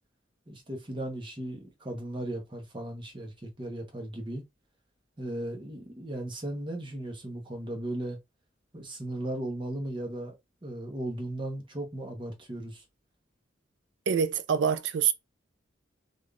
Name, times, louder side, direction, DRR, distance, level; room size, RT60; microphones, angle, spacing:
voice 1, 0.5-4.4 5.2-8.2 8.7-10.3 10.6-12.8, right 1 dB, 25° right, 0.8 m, -36 dB
voice 2, 14.1-15.1, right 7 dB, 70° right, 0.3 m, -25 dB
3.4 x 2.4 x 2.3 m
head